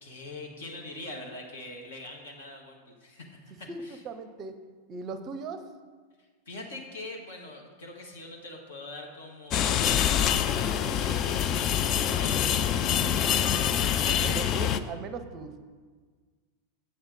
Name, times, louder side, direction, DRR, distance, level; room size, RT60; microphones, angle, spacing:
voice 1, 0.0-4.0 6.4-14.4, left 2 dB, 60° left, 1 dB, 1.5 m, -43 dB
voice 2, 3.7-4.5 4.9-5.6 14.0-15.6, right 4 dB, 30° right, 10 dB, 0.6 m, -38 dB
sound 1, 9.5-14.8, left 9 dB, 35° left, 0.4 m, -25 dB
8.1 x 7.8 x 4.0 m, 1.5 s
figure-of-eight pair, 90°, 0 cm